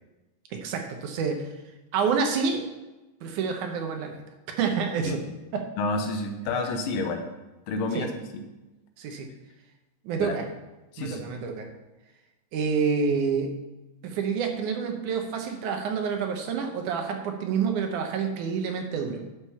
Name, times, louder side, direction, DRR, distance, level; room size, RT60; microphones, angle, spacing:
voice 1, 0.5-1.5 1.9-2.7 3.2-4.2 4.5-5.2 5.5-5.7 7.9-8.1 9.0-9.3 10.0-10.5 11.0-11.7 12.5-13.5 14.0-19.2, right 5 dB, 75° right, 4 dB, 2.3 m, -28 dB
voice 2, 5.8-7.2 7.7-8.4 10.2-10.4 10.9-11.2, left 3 dB, 85° left, 5 dB, 2.7 m, -29 dB
11.0 x 5.2 x 5.6 m, 1.1 s
omnidirectional pair, 3.8 m